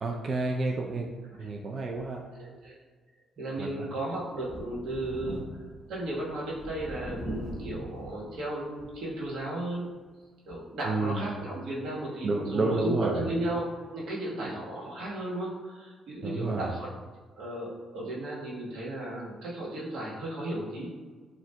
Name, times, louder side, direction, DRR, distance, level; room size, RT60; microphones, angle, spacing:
voice 1, 0.0-2.3 3.6-3.9 10.8-11.3 12.2-13.3 16.2-16.8, right 3 dB, 45° right, 1 dB, 0.4 m, -30 dB
voice 2, 2.3-2.7 3.4-5.6 5.9-9.9 10.5-13.6 13.9-16.8 17.4-20.9, right 1 dB, 80° right, -5 dB, 1.2 m, -34 dB
Thunder, 4.4-9.5 9.9-10.0 11.4-11.5, right 1 dB, 15° right, 0.9 m, -41 dB
7.2 x 2.5 x 2.2 m, 1.4 s
cardioid pair, 90°, 0 cm